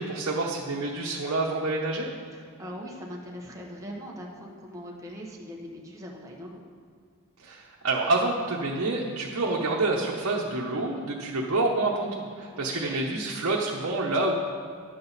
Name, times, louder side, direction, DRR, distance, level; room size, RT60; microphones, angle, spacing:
voice 1, 0.0-2.1 7.4-14.4, right 2 dB, 70° right, -3 dB, 0.9 m, -27 dB
voice 2, 2.3-6.6 12.7-13.0, equal, 15° right, -2 dB, 1.2 m, -40 dB
11.0 x 7.6 x 4.1 m, 2.1 s
head